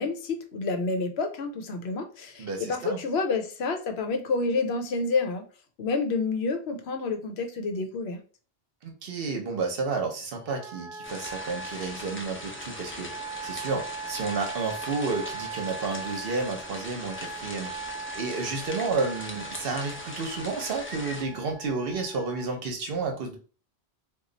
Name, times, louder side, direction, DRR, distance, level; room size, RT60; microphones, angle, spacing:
voice 1, 0.0-5.5 5.8-8.2, left 4 dB, 75° left, 6 dB, 0.9 m, -29 dB
voice 2, 2.4-3.0 8.8-13.1 13.4-17.7 18.1-23.4, right 4 dB, 60° right, 3 dB, 0.9 m, -31 dB
Wind instrument woodwind instrument, 10.4-22.5, right 4 dB, 25° right, 0.9 m, -40 dB
sound 1, 11.0-21.2, left 1 dB, 20° left, 0.3 m, -40 dB
3.0 x 2.4 x 3.8 m, 0.39 s
omnidirectional pair, 1.1 m